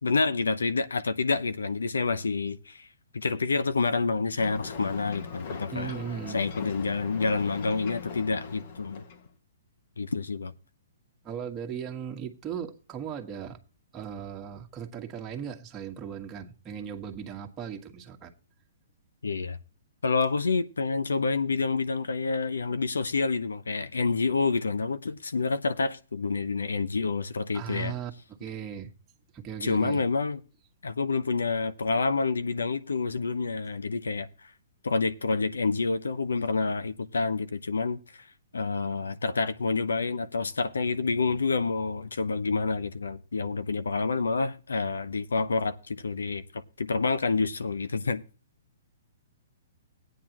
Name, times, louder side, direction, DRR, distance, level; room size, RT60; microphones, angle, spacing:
voice 1, 0.0-2.9 3.1-5.9 6.3-9.0 10.0-10.5 19.2-19.6 20.0-27.9 29.6-30.4 30.8-34.3 34.8-38.0 38.5-48.2, left 4 dB, 90° left, 0.8 m, -28 dB
Ocean, 4.4-9.3, left 5 dB, 55° left, 1.7 m, -40 dB
voice 2, 5.7-6.4 11.2-13.6 13.9-18.3 27.5-28.9 29.3-30.0, right 8 dB, 20° right, 1.6 m, -37 dB
15.0 x 9.2 x 3.0 m
hypercardioid pair, 135°, 0 cm